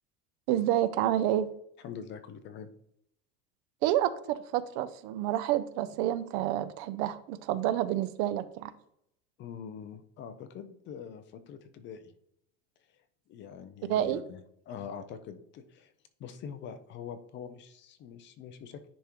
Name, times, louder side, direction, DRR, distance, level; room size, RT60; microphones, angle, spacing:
voice 1, 0.5-1.5 3.8-8.7 13.9-14.2, right 12 dB, 65° right, 14 dB, 0.6 m, -29 dB
voice 2, 1.8-2.7 9.4-12.1 13.3-14.4 14.7-15.9 16.2-18.9, left 7 dB, 35° left, 10 dB, 0.5 m, -44 dB
10.0 x 3.5 x 3.0 m, 0.73 s
cardioid pair, 165°, 34 cm